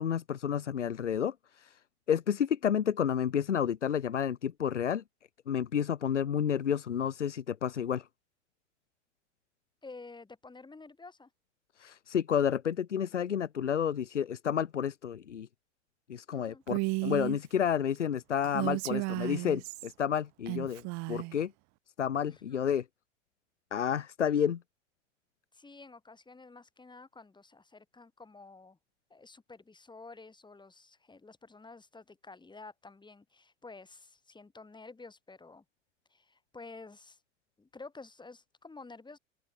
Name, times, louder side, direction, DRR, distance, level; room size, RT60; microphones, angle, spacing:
voice 1, 0.0-1.8 2.1-5.0 5.5-8.1 11.8-15.5 16.1-21.5 22.0-22.8 23.7-24.6, left 8 dB, 90° left, 1.0 m, -30 dB
voice 2, 9.8-11.3 16.3-16.6 22.3-22.7 25.5-28.8 29.1-35.6 36.1-37.2 37.6-39.2, left 3 dB, 15° left, 2.9 m, -51 dB
Female speech woman speaking, 16.7-17.4 18.4-19.9 20.5-21.3, right 26 dB, 50° right, 1.4 m, -33 dB
open air
hypercardioid pair, 80°, 35 cm